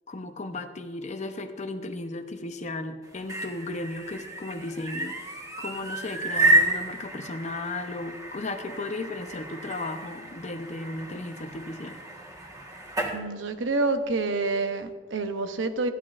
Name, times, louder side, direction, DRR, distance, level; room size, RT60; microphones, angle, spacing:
voice 1, 0.1-5.2 5.6-12.0, left 2 dB, 40° left, 8 dB, 0.7 m, -35 dB
sound 1, 3.0-13.2, right 1 dB, 20° right, 1.4 m, -30 dB
voice 2, 13.1-15.9, right 3 dB, 85° right, 7 dB, 0.8 m, -28 dB
13.5 x 10.5 x 2.5 m, 1.5 s
head